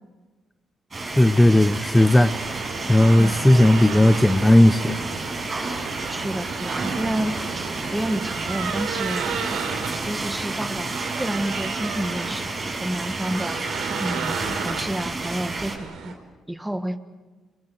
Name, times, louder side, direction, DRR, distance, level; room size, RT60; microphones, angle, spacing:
sound 1, 0.9-15.8, right 3 dB, 35° right, 6.3 m, -31 dB
voice 1, 1.0-2.3 2.9-5.0, left 1 dB, 10° left, 10 dB, 0.8 m, -16 dB
sound 2, 1.9-16.1, right 6 dB, 85° right, 4.1 m, -33 dB
voice 2, 6.1-7.4 7.9-9.3 10.0-13.6 14.0-14.4 14.6-16.2 16.5-17.0, right 1 dB, 5° right, 9 dB, 1.6 m, -29 dB
30.0 x 22.0 x 7.7 m, 1.3 s
cardioid pair, 90°, 0 cm